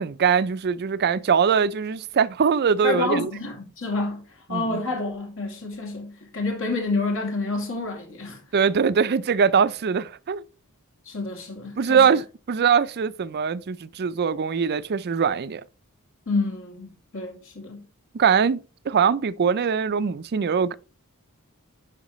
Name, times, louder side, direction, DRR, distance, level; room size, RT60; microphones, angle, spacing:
voice 1, 0.0-3.3 4.5-4.6 8.5-10.4 11.8-15.6 18.1-18.6 18.9-20.7, right 6 dB, 45° right, 0.4 m, -22 dB
voice 2, 2.8-8.4 11.0-12.1 16.3-17.9, left 3 dB, 60° left, 2.4 m, -29 dB
11.0 x 5.7 x 3.1 m
head